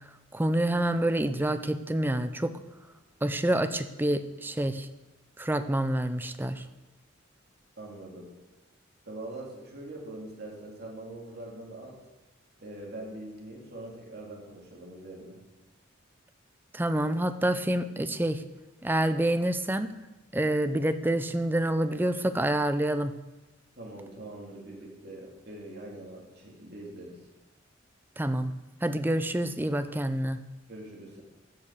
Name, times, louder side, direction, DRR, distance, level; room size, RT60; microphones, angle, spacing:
voice 1, 0.3-2.5 3.2-4.9 5.4-6.6 16.7-18.4 18.8-19.9 20.3-23.1 28.2-28.5 28.8-30.4, right 1 dB, 10° right, 10 dB, 0.5 m, -27 dB
voice 2, 7.8-8.3 9.1-12.0 12.6-15.4 23.8-27.3 30.7-31.2, right 1 dB, 50° right, -2 dB, 2.8 m, -43 dB
15.0 x 5.9 x 6.6 m, 1.1 s
head